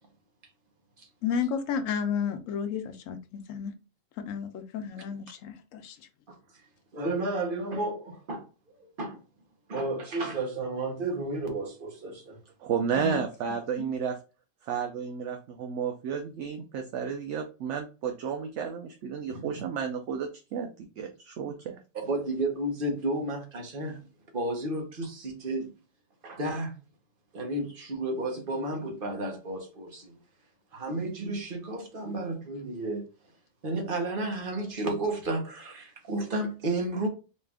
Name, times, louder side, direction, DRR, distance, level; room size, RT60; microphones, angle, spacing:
voice 1, 1.2-3.7 4.2-6.0 13.0-13.2 13.8-13.9, left 7 dB, 80° left, 1.0 m, -32 dB
voice 2, 6.9-8.5 8.8-9.2 9.7-12.4 19.3-19.5 21.9-24.0 24.3-25.7 26.2-26.7 27.3-30.1 30.7-33.1 33.6-37.1, right 2 dB, 45° right, 1.1 m, -32 dB
voice 3, 12.6-14.2 14.6-21.8, right 7 dB, 70° right, 0.9 m, -32 dB
4.3 x 2.4 x 3.3 m
omnidirectional pair, 1.3 m